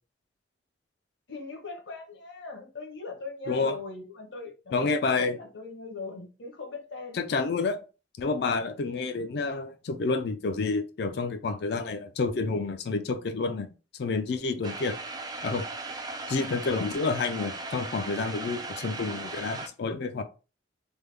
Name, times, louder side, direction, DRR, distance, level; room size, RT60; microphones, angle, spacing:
voice 1, 1.3-7.2, left 4 dB, 75° left, 0.9 m, -40 dB
voice 2, 3.5-3.8 4.7-5.4 7.1-7.8 8.2-13.7 14.0-15.0 15.4-15.7 16.3-20.2, left 4 dB, 60° left, 0.4 m, -29 dB
sound 1, 14.6-19.7, right 3 dB, 20° right, 0.4 m, -37 dB
3.4 x 2.2 x 3.2 m
head